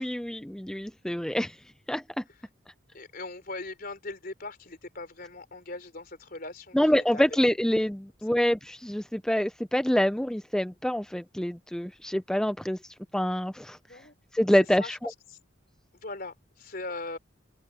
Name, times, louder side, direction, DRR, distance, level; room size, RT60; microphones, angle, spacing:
voice 1, 0.0-2.2 6.7-14.0 14.3-15.1, equal, 5° left, 0.3 m, -26 dB
voice 2, 2.9-6.8 7.1-7.3 13.9-14.1 14.8-15.4 16.0-17.2, left 2 dB, 50° left, 4.0 m, -40 dB
open air
head